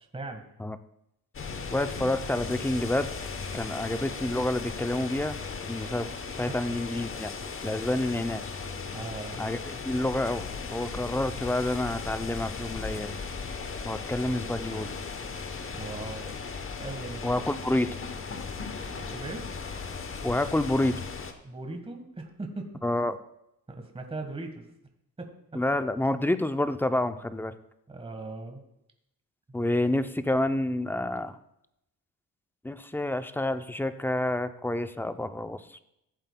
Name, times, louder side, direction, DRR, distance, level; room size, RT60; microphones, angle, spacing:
voice 1, 0.1-0.4 6.5-6.6 8.9-9.4 15.7-16.3 16.8-17.2 19.1-19.5 21.4-22.8 23.7-24.7 25.2-25.6 27.9-28.6, right 2 dB, 15° right, 4 dB, 1.4 m, -38 dB
sound 1, 1.3-21.3, left 5 dB, 35° left, 0.9 m, -37 dB
voice 2, 1.7-3.1 3.5-5.4 5.7-6.1 6.4-7.3 7.6-8.5 9.4-10.4 10.7-13.2 13.8-14.9 17.2-17.9 20.2-20.9 22.8-23.2 25.5-27.5 29.5-31.4 32.6-35.6, left 1 dB, 5° left, 10 dB, 0.4 m, -28 dB
15.0 x 7.8 x 2.2 m, 0.81 s
cardioid pair, 95°, 35 cm